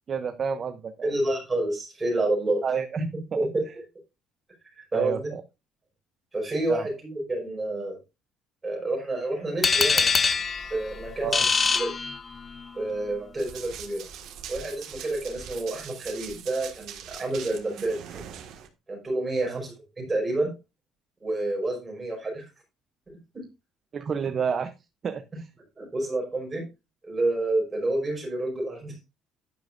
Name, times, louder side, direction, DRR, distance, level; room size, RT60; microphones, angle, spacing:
voice 1, 0.1-1.1 2.6-3.0 3.3-3.5 4.9-5.4 6.7-6.9 11.2-11.5 19.5-19.6 23.9-24.7 25.0-25.5, right 6 dB, 30° right, 9 dB, 0.6 m, -30 dB
voice 2, 1.0-2.6 3.4-3.5 4.8-5.3 6.3-8.0 8.6-10.1 10.7-11.9 12.7-14.0 14.5-18.2 18.9-20.5 21.2-22.4 23.3-23.4 25.8-26.6 27.0-28.9, right 2 dB, 15° right, -1 dB, 5.6 m, -29 dB
sound 1, 9.6-12.6, left 5 dB, 20° left, 0.7 m, -24 dB
Run, 13.4-18.7, right 9 dB, 60° right, 1.7 m, -42 dB
11.0 x 10.5 x 2.5 m, 0.27 s
cardioid pair, 180°, 0 cm